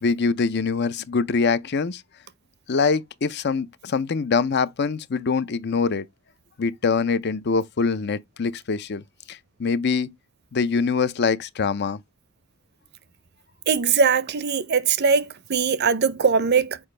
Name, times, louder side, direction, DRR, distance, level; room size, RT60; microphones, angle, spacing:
voice 1, 0.0-2.0 2.7-6.0 6.6-9.0 9.3-10.1 10.5-12.0, left 5 dB, 50° left, 0.5 m, -24 dB
voice 2, 13.7-16.8, right 5 dB, 50° right, 0.6 m, -21 dB
7.1 x 4.8 x 3.3 m
head